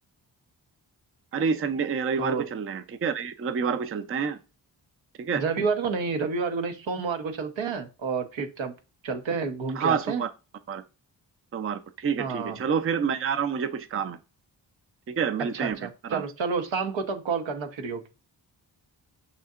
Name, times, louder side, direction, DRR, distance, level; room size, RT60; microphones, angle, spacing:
voice 1, 1.3-4.4 5.2-5.4 9.7-10.3 10.7-10.8 11.5-14.2 15.1-16.2, right 6 dB, 30° right, 0.5 m, -28 dB
voice 2, 5.3-8.7 9.0-10.2 12.2-12.6 15.5-18.0, right 5 dB, 75° right, 0.9 m, -29 dB
6.7 x 2.7 x 2.4 m
supercardioid pair, 40°, 47 cm